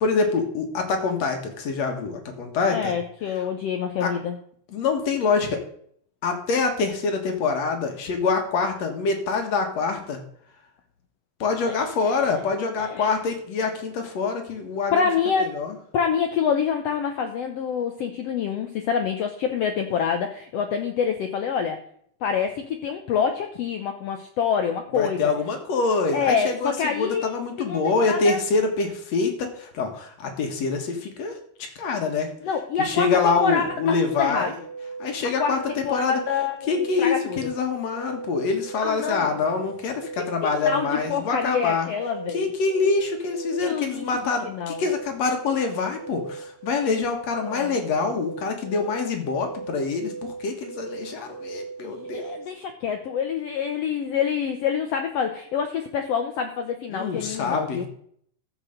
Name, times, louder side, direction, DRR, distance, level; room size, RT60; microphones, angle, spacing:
voice 1, 0.0-2.9 4.0-4.1 4.7-5.6 6.2-10.2 11.4-15.0 15.4-15.7 24.9-31.4 31.8-32.3 32.8-34.5 35.0-36.2 36.7-41.9 42.3-52.3 56.9-57.9, left 4 dB, 60° left, 5 dB, 2.4 m, -25 dB
voice 2, 2.7-4.4 11.7-11.8 12.1-12.4 12.8-13.1 14.9-15.6 15.9-21.8 22.2-25.2 26.1-28.4 32.4-34.7 35.4-37.5 38.8-39.4 40.4-42.5 43.6-44.8 47.3-47.9 51.8-57.9, left 7 dB, 85° left, 6 dB, 1.4 m, -27 dB
sound 1, 33.6-52.5, right 4 dB, 50° right, 2.2 m, -38 dB
14.5 x 5.0 x 6.6 m, 0.63 s
omnidirectional pair, 3.9 m